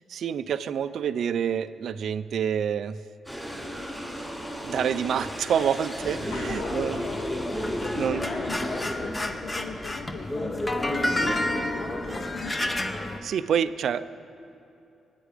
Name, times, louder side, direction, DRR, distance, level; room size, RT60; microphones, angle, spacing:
voice 1, 0.0-3.0 4.6-7.0 7.9-8.3 11.2-11.4 12.6-12.7 13.2-14.1, right 8 dB, 65° right, 14 dB, 0.4 m, -27 dB
sound 1, 3.2-8.9, equal, ahead, 3.0 m, -36 dB
sound 2, 6.0-13.2, left 1 dB, 15° left, 0.7 m, -30 dB
voice 2, 6.3-12.8, left 6 dB, 65° left, 6 dB, 0.6 m, -40 dB
21.5 x 9.2 x 5.0 m, 2.8 s
cardioid pair, 140°, 0 cm